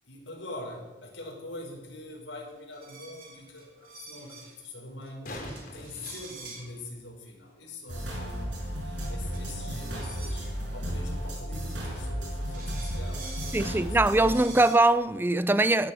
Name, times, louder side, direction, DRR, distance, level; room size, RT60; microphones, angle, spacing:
voice 1, 0.0-14.2 14.5-14.7, left 2 dB, 90° left, 5.5 m, -44 dB
sound 1, 2.0-2.1 4.9-7.0 9.9-10.0, left 1 dB, 50° left, 3.8 m, -43 dB
sound 2, 2.7-4.6 5.0-5.1 5.4-6.8 8.1-10.5 12.0-12.1 12.5-13.8 14.2-14.9, right 3 dB, 50° right, 4.0 m, -47 dB
sound 3, 7.9-14.4, equal, 75° right, 5.6 m, -34 dB
voice 2, 13.5-15.9, right 2 dB, 10° right, 0.4 m, -22 dB
16.0 x 12.0 x 6.3 m
head